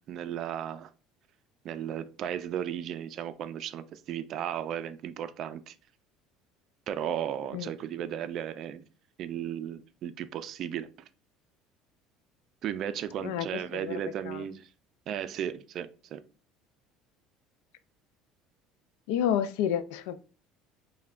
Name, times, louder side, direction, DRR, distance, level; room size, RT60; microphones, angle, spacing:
voice 1, 0.1-0.9 1.6-5.8 6.9-8.8 9.2-10.9 12.6-14.7 15.1-16.2, right 9 dB, 50° right, 0.4 m, -35 dB
voice 2, 13.2-14.0 14.2-14.4 19.1-20.2, left 9 dB, 85° left, 0.3 m, -30 dB
5.4 x 2.2 x 2.4 m
cardioid pair, 120°, 0 cm